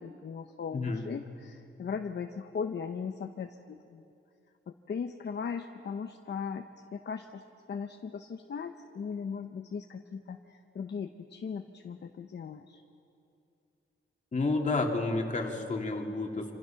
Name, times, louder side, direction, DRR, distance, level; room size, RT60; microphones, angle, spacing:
voice 1, 0.0-4.0 4.7-6.7 6.9-7.4 7.7-12.8, left 6 dB, 55° left, 5 dB, 0.9 m, -38 dB
voice 2, 0.7-1.0 14.3-16.5, left 3 dB, 35° left, 1 dB, 2.4 m, -30 dB
27.0 x 26.5 x 5.9 m, 2.6 s
wide cardioid pair, 165°, 21 cm